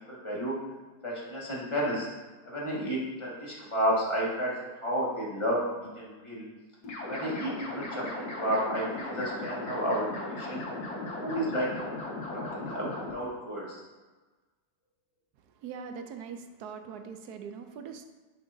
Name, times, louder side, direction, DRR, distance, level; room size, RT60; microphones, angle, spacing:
voice 1, 0.1-0.6 1.0-2.1 2.4-4.5 4.8-6.5 7.0-10.7 11.2-11.7 12.3-13.8, equal, 20° left, -5 dB, 1.7 m, -31 dB
sound 1, 6.8-13.1, left 2 dB, 80° left, 1.9 m, -37 dB
voice 2, 15.6-18.0, right 6 dB, 80° right, 7 dB, 1.1 m, -41 dB
10.5 x 5.3 x 2.7 m, 1.3 s
omnidirectional pair, 1.7 m